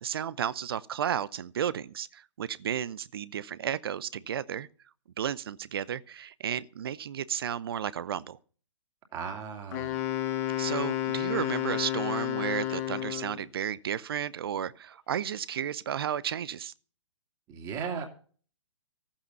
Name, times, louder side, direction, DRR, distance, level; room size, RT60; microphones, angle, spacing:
voice 1, 0.0-4.7 5.2-8.4 10.6-16.7, right 9 dB, 50° right, 0.6 m, -33 dB
voice 2, 9.1-10.0 17.5-18.1, right 6 dB, 25° right, 2.6 m, -36 dB
Wind instrument woodwind instrument, 9.7-13.4, left 13 dB, 30° left, 1.4 m, -31 dB
14.5 x 8.7 x 5.7 m
figure-of-eight pair, 120°, 16 cm